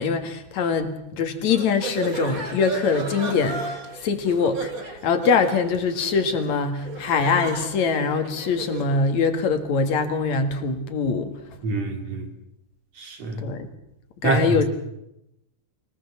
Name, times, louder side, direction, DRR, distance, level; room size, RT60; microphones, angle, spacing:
voice 1, 0.0-11.3 13.4-13.7 14.2-14.7, left 5 dB, 65° left, 3.0 m, -23 dB
sound 1, 1.5-9.0, right 4 dB, 30° right, 2.6 m, -34 dB
voice 2, 11.6-12.3 13.0-13.5 14.2-14.7, right 3 dB, 55° right, 3.6 m, -26 dB
23.5 x 19.5 x 7.2 m
omnidirectional pair, 3.5 m